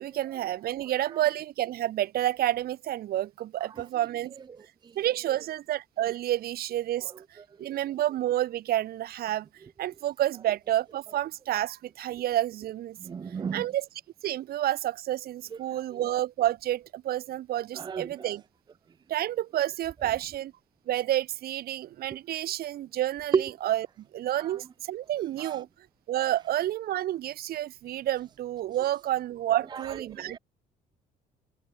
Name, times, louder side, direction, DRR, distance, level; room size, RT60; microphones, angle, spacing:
voice 1, 0.0-4.3 5.0-7.1 7.6-9.5 9.8-13.0 13.5-13.8 14.2-18.4 19.1-20.5 20.9-25.7 26.1-30.4, right 13 dB, 65° right, 1.7 m, -29 dB
voice 2, 0.8-1.2 3.6-3.9 4.5-5.0 5.3-5.4 7.0-7.7 13.0-13.7 15.5-16.0 17.7-18.3 20.0-20.1 23.3-23.5 24.4-24.6 25.4-25.6 29.7-30.4, right 6 dB, 25° right, 0.5 m, -35 dB
open air
cardioid pair, 110°, 17 cm